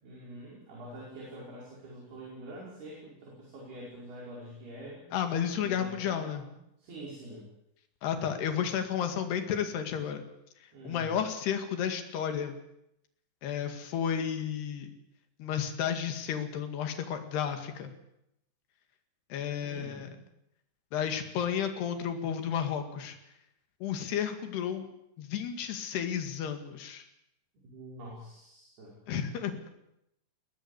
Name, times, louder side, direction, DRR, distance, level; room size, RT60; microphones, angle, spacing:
voice 1, 0.0-5.1 5.6-7.5 10.7-11.1 19.6-20.1 27.5-29.0, right 1 dB, 50° right, -4 dB, 7.4 m, -46 dB
voice 2, 5.1-6.4 8.0-10.2 10.6-12.6 13.4-14.9 15.4-17.9 19.3-20.1 20.9-23.2 23.8-24.9 25.2-27.1 29.1-29.7, left 8 dB, 60° left, 6 dB, 3.8 m, -32 dB
21.5 x 19.0 x 8.3 m, 0.81 s
omnidirectional pair, 5.8 m